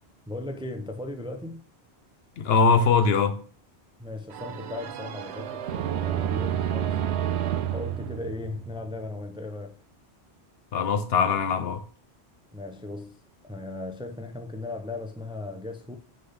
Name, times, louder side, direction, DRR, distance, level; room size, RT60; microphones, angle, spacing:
voice 1, 0.3-1.6 4.0-7.0 7.7-9.7 12.5-16.0, left 2 dB, 5° right, 0.5 m, -37 dB
voice 2, 2.4-3.4 10.7-11.8, left 5 dB, 70° left, 0.9 m, -22 dB
sound 1, 4.3-9.1, right 10 dB, 85° right, 0.9 m, -30 dB
6.6 x 3.9 x 5.6 m
omnidirectional pair, 1.1 m